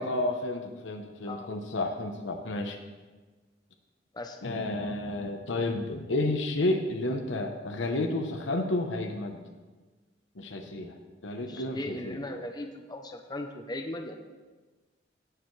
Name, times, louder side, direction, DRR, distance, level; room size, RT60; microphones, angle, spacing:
voice 1, 0.0-2.8 4.4-9.4 10.4-11.0 11.2-12.2, left 2 dB, 80° left, 4 dB, 0.9 m, -31 dB
voice 2, 11.5-14.1, left 1 dB, 20° left, 5 dB, 0.6 m, -38 dB
17.5 x 6.8 x 3.2 m, 1.3 s
head